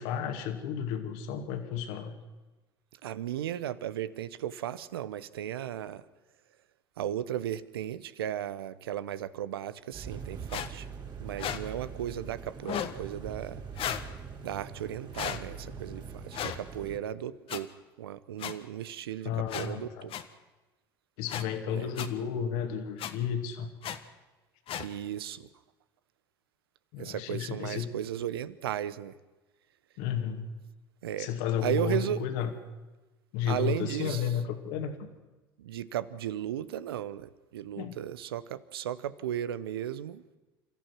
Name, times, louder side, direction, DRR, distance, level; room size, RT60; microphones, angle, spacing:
voice 1, 0.0-2.1 19.2-20.1 21.2-23.7 26.9-27.9 30.0-30.5 31.2-32.5 33.3-35.1 37.8-38.0, left 8 dB, 65° left, 6 dB, 2.5 m, -32 dB
voice 2, 3.0-6.0 7.0-10.9 11.2-13.6 14.4-20.1 21.7-21.9 24.8-25.5 27.0-29.1 31.0-31.3 31.6-32.2 33.4-34.4 35.6-40.2, right 11 dB, 80° right, 16 dB, 0.9 m, -35 dB
sound 1, 9.9-17.0, right 6 dB, 35° right, 3.4 m, -43 dB
sound 2, 10.5-10.7 11.4-11.6 12.6-12.9 13.8-14.1 15.1-15.4 16.3-16.6 17.5-17.6 18.4-18.5 19.5-19.7 20.1-20.2 21.3-21.4 22.0-22.1 23.0-23.1 23.8-24.0 24.7-24.9, left 10 dB, 45° left, 1.5 m, -34 dB
29.0 x 14.5 x 6.2 m, 1.2 s
hypercardioid pair, 70°, 13 cm